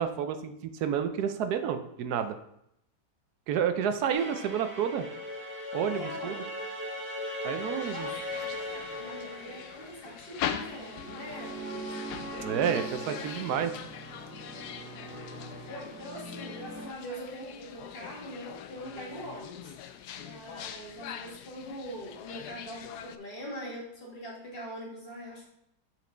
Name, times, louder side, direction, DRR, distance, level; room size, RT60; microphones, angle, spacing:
voice 1, 0.0-2.4 3.5-5.1 5.7-6.4 7.4-8.1 12.4-13.7, right 8 dB, 75° right, 9 dB, 1.2 m, -30 dB
sound 1, 4.1-16.9, equal, 5° right, 1.7 m, -39 dB
voice 2, 5.9-6.5 7.9-8.6 9.0-12.1 15.4-19.7 20.2-25.4, equal, 35° left, -4 dB, 2.3 m, -43 dB
sound 2, 7.8-23.2, left 9 dB, 75° left, 1.1 m, -42 dB
7.5 x 5.1 x 3.9 m, 0.77 s
omnidirectional pair, 1.8 m